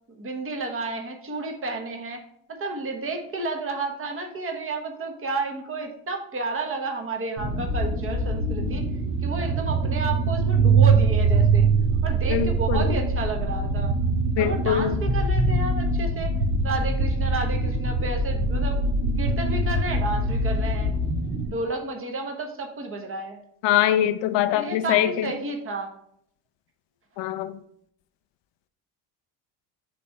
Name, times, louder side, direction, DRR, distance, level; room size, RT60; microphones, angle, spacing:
voice 1, 0.1-2.2 2.5-8.8 9.2-11.7 12.0-13.9 14.4-16.3 16.6-18.8 19.2-21.0 21.4-23.4 24.3-25.9, right 3 dB, 25° right, 3 dB, 1.3 m, -31 dB
sound 1, 7.4-21.5, right 3 dB, 80° right, 2.9 m, -23 dB
voice 2, 12.3-12.9 14.4-14.9 23.6-25.3 27.2-27.5, left 11 dB, 60° left, 10 dB, 0.7 m, -23 dB
6.6 x 3.5 x 5.5 m, 0.70 s
supercardioid pair, 90°, 48 cm